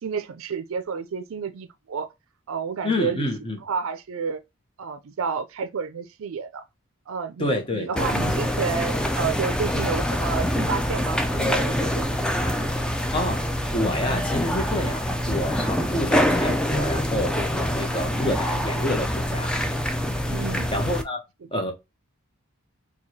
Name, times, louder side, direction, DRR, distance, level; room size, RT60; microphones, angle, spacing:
voice 1, 0.0-2.1 2.5-3.3 3.7-4.4 4.8-6.6 7.1-12.5 20.3-20.7, right 6 dB, 70° right, 0.4 m, -30 dB
voice 2, 2.8-3.6 7.4-8.1 13.1-13.4 13.7-19.5 20.7-21.2 21.5-21.7, left 1 dB, 25° left, 0.8 m, -28 dB
sound 1, 8.0-21.0, equal, 5° left, 0.3 m, -25 dB
4.6 x 2.3 x 2.7 m
head